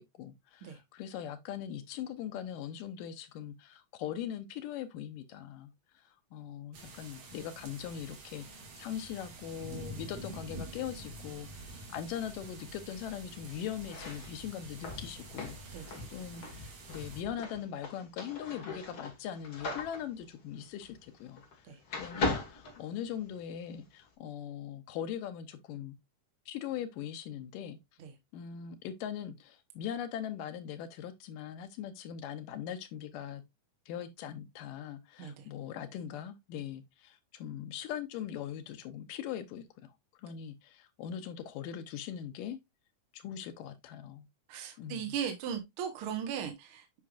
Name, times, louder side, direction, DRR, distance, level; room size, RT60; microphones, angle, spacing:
voice 1, 0.0-21.4 22.0-26.0 26.5-27.8 28.3-33.4 33.9-39.9 40.2-42.6 43.1-44.3 44.8-45.2, left 9 dB, 85° left, 2.4 m, -41 dB
sound 1, 6.7-17.2, right 2 dB, 80° right, 3.7 m, -47 dB
sound 2, 13.8-21.6 21.9-23.5, left 3 dB, 45° left, 2.3 m, -39 dB
voice 2, 44.5-47.0, right 8 dB, 55° right, 1.8 m, -38 dB
8.4 x 5.6 x 2.5 m
omnidirectional pair, 3.8 m